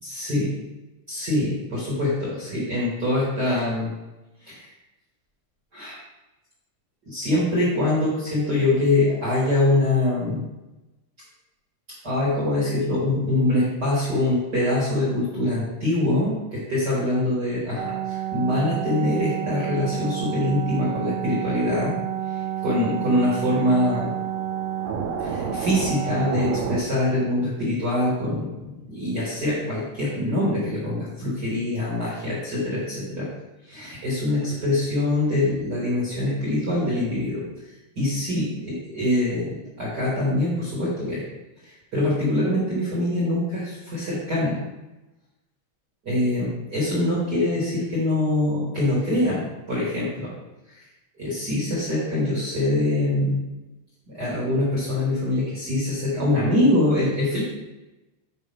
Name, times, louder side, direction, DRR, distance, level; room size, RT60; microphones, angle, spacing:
voice 1, 0.0-0.5 1.1-3.9 4.4-4.7 5.7-6.0 7.0-10.4 12.0-21.9 22.3-24.1 25.2-33.3 33.7-37.4 37.9-41.2 41.6-44.6 46.0-50.3 50.7-50.8 51.2-53.4 54.1-57.4, left 1 dB, 55° right, -7 dB, 1.1 m, -24 dB
sound 1, 17.8-26.8, right 9 dB, 85° right, 3.1 m, -29 dB
8.8 x 5.2 x 3.6 m, 1.0 s
omnidirectional pair, 5.6 m